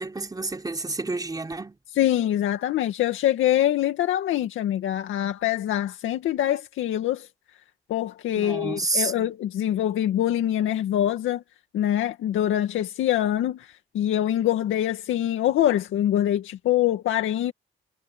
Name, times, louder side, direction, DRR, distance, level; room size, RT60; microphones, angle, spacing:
voice 1, 0.0-1.8 8.4-9.3, right 3 dB, 20° right, 3.7 m, -29 dB
voice 2, 2.0-7.3 7.9-11.4 11.7-13.7 13.9-17.5, left 12 dB, 80° left, 2.2 m, -24 dB
cardioid pair, 90°, 20 cm